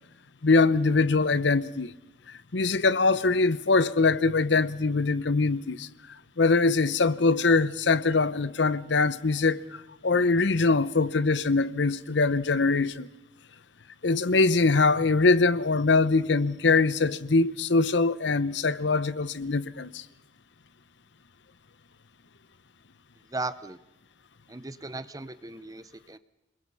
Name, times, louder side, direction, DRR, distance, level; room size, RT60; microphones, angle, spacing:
voice 1, 0.4-1.9 2.5-5.9 6.4-13.1 14.0-20.0, left 3 dB, 70° left, 0.8 m, -23 dB
voice 2, 23.3-23.8 24.5-26.2, right 3 dB, 20° right, 0.9 m, -37 dB
28.5 x 21.5 x 5.5 m
head